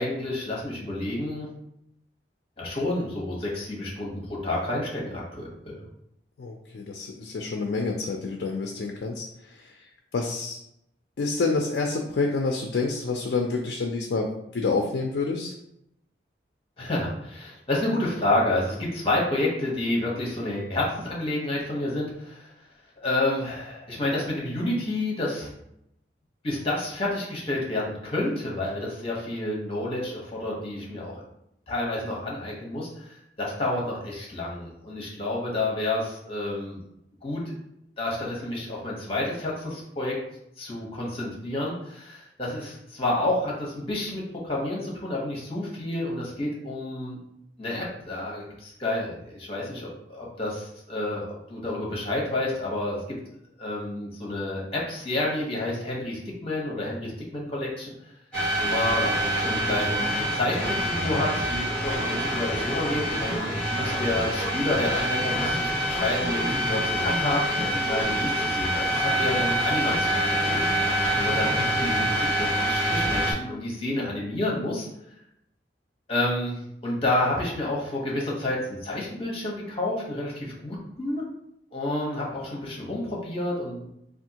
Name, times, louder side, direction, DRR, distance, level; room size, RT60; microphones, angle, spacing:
voice 1, 0.0-1.5 2.6-4.1 4.4-5.8 16.8-22.5 23.0-25.5 26.4-31.2 31.7-36.8 37.2-37.4 38.0-40.2 40.6-47.2 47.6-53.0 53.6-57.9 58.6-70.6 71.1-74.9 76.1-81.2 81.7-83.9, left 1 dB, 35° left, -3 dB, 1.0 m, -29 dB
voice 2, 6.4-9.7 10.1-10.6 11.2-14.3 14.5-15.5 71.6-71.8, left 3 dB, 65° left, 2 dB, 0.4 m, -28 dB
sound 1, 58.3-73.3, equal, 5° left, 0.9 m, -26 dB
3.4 x 2.4 x 2.8 m, 0.79 s
head